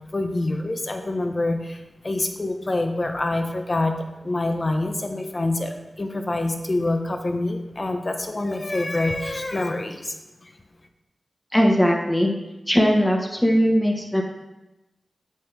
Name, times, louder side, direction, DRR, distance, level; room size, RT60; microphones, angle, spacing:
voice 1, 0.1-1.8 2.0-3.9 4.2-10.1, left 2 dB, 40° left, 5 dB, 1.0 m, -26 dB
voice 2, 11.5-12.3 12.7-14.2, equal, 10° left, 0 dB, 1.4 m, -19 dB
7.8 x 7.6 x 3.5 m, 1.0 s
cardioid pair, 50°, 0 cm